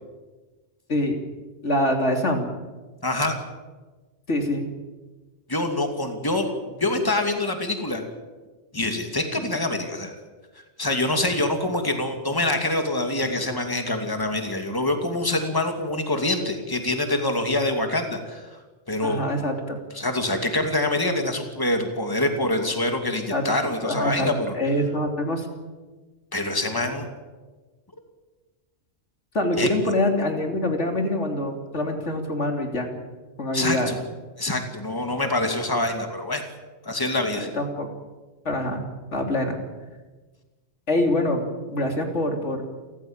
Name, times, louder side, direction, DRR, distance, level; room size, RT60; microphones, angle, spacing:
voice 1, 1.6-2.5 4.3-4.7 19.0-19.8 23.3-23.4 23.8-24.3 24.6-25.5 29.3-32.9 33.4-33.9 37.3-37.9 38.4-38.8 39.1-39.6 40.9-42.6, left 1 dB, 80° left, 4 dB, 3.4 m, -25 dB
voice 2, 3.0-3.4 5.5-6.5 6.7-8.0 8.7-10.2 10.8-18.5 18.9-19.2 19.9-24.6 26.3-27.1 29.6-29.7 33.5-34.0 34.4-36.4 36.8-37.5, left 2 dB, 20° left, 5 dB, 2.5 m, -25 dB
29.0 x 14.5 x 8.9 m, 1.3 s
omnidirectional pair, 1.2 m